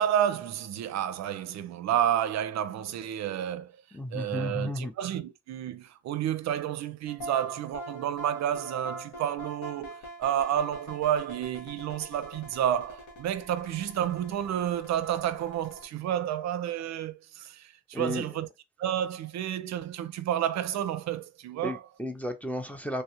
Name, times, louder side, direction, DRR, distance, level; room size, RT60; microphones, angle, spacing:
voice 1, 0.0-3.7 4.1-18.5 18.8-21.8, right 10 dB, 65° right, 0.5 m, -30 dB
voice 2, 3.9-4.9 17.9-18.3 21.6-23.0, left 1 dB, 5° left, 0.5 m, -33 dB
sound 1, 7.1-15.9, right 1 dB, 80° left, 1.2 m, -44 dB
3.3 x 2.3 x 2.8 m
cardioid pair, 90°, 30 cm